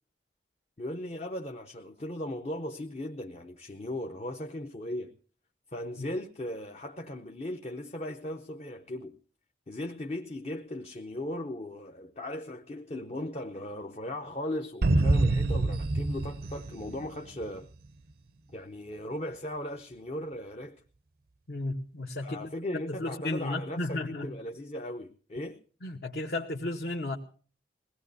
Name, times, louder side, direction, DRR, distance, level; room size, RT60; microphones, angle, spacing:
voice 1, 0.8-5.1 5.7-9.1 9.7-17.7 18.5-20.8 22.2-25.6, left 1 dB, 35° left, 0.7 m, -37 dB
sound 1, 14.8-17.6, right 2 dB, 50° right, 0.6 m, -26 dB
voice 2, 21.5-24.3 25.8-27.2, left 2 dB, 55° left, 1.0 m, -34 dB
21.5 x 17.5 x 2.7 m
head